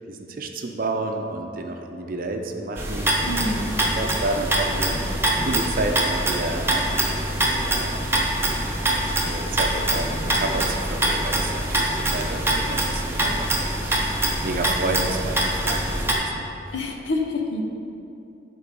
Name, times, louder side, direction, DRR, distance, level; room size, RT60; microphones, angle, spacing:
voice 1, 0.1-3.4 3.9-7.9 8.4-13.9 14.2-16.5, right 2 dB, 50° right, 4 dB, 0.6 m, -31 dB
sound 1, 2.8-16.1, right 1 dB, 15° right, 0.8 m, -24 dB
voice 2, 3.3-3.8 16.7-17.6, left 2 dB, 80° left, 3 dB, 0.8 m, -27 dB
9.4 x 3.9 x 5.4 m, 2.7 s
head